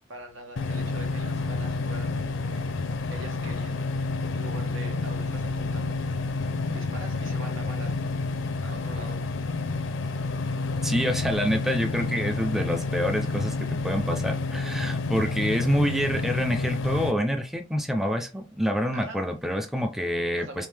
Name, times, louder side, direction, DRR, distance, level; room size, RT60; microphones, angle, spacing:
voice 1, 0.0-2.7 3.1-3.8 4.3-6.0 6.7-7.9 8.6-9.2 18.9-19.2 20.4-20.7, right 1 dB, 85° right, 3 dB, 1.2 m, -43 dB
sound 1, 0.6-17.1, left 3 dB, 80° left, 0.5 m, -29 dB
voice 2, 10.8-20.7, equal, ahead, 5 dB, 0.4 m, -27 dB
3.5 x 2.8 x 3.2 m, 0.30 s
head